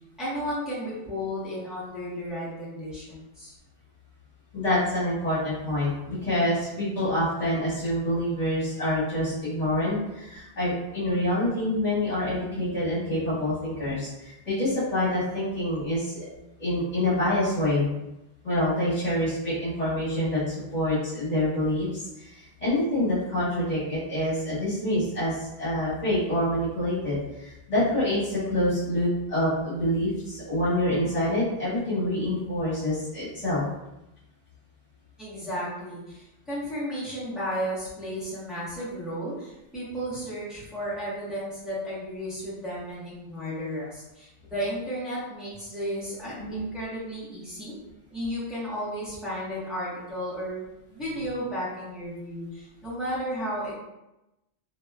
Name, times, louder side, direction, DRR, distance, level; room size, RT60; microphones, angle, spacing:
voice 1, 0.2-3.5 35.2-47.7 48.1-50.6 50.9-53.7, equal, ahead, -10 dB, 1.1 m, -33 dB
voice 2, 4.5-16.2 16.6-17.9 18.4-21.9 22.2-33.6 46.4-46.7, left 1 dB, 35° left, -10 dB, 1.4 m, -26 dB
2.9 x 2.7 x 2.3 m, 0.93 s
omnidirectional pair, 1.1 m